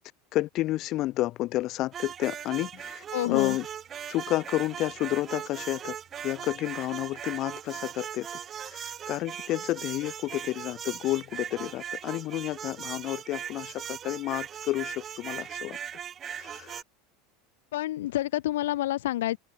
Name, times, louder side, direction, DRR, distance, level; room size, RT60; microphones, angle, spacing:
voice 1, 0.3-3.7 4.1-6.0 6.2-8.3 8.6-15.8 16.3-16.8, left 16 dB, 50° left, 6.8 m, -30 dB
sound 1, 1.9-16.8, right 9 dB, 35° right, 5.5 m, -39 dB
voice 2, 3.1-3.6 17.7-19.4, left 14 dB, 70° left, 1.6 m, -28 dB
hypercardioid pair, 85°, 0 cm